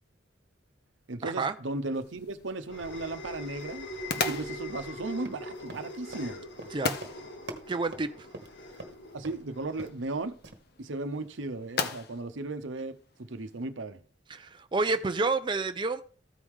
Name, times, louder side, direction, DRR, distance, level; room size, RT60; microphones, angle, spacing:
voice 1, 1.1-6.5 9.1-10.3 10.8-14.1, right 2 dB, 85° right, 0.9 m, -36 dB
sound 1, 1.8-10.6, equal, 70° left, 1.5 m, -43 dB
sound 2, 1.9-13.6, left 4 dB, 55° left, 0.9 m, -40 dB
Run, 5.1-8.9 9.2-9.4 9.7-10.1 10.4-10.5, right 2 dB, 60° right, 1.3 m, -45 dB
voice 2, 7.7-8.1 14.3-16.0, right 3 dB, 25° right, 0.5 m, -29 dB
14.5 x 4.9 x 3.6 m
head